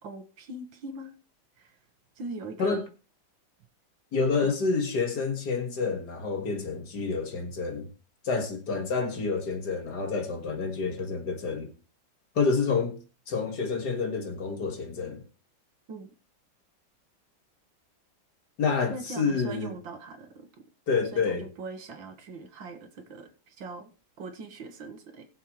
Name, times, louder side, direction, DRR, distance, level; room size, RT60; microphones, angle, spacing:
voice 1, 0.0-1.1 1.6-1.8 2.2-2.8 4.4-4.5 15.9-16.1 18.9-20.6 21.1-23.9 24.2-25.3, right 3 dB, 75° right, 2.1 m, -41 dB
voice 2, 4.1-7.9 8.2-11.7 12.4-13.0 13.3-15.2 18.6-19.7 20.9-21.5, left 4 dB, 55° left, 2.2 m, -28 dB
19.5 x 7.3 x 3.1 m
omnidirectional pair, 2.2 m